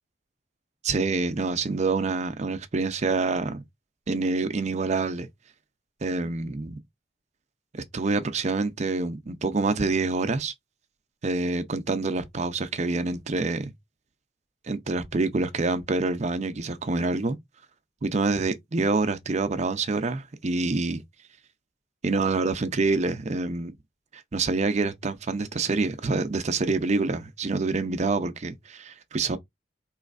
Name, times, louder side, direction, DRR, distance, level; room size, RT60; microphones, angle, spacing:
voice 1, 0.8-3.6 4.1-5.3 6.0-6.8 7.7-10.5 11.2-13.7 14.7-17.4 18.0-21.0 22.0-23.7 24.1-29.4, right 3 dB, 35° right, 0.5 m, -26 dB
4.2 x 3.1 x 2.4 m
head